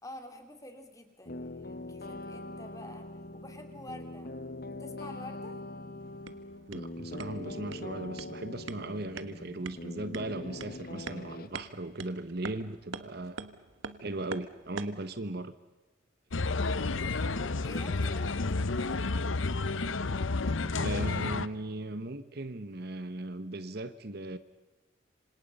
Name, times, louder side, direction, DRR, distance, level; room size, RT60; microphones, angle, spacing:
voice 1, 0.0-3.1 3.3-4.4 4.7-5.6 17.2-19.3, left 1 dB, 15° left, 5 dB, 2.7 m, -48 dB
sound 1, 1.3-11.5, left 2 dB, 45° left, 1.2 m, -42 dB
sound 2, 6.0-15.1, right 4 dB, 75° right, 1.3 m, -46 dB
voice 2, 6.7-13.5 14.0-15.5 20.8-24.4, right 2 dB, 50° right, 12 dB, 1.1 m, -38 dB
sound 3, 16.3-21.5, left 3 dB, 70° left, 0.9 m, -30 dB
27.0 x 26.5 x 5.5 m, 1.1 s
head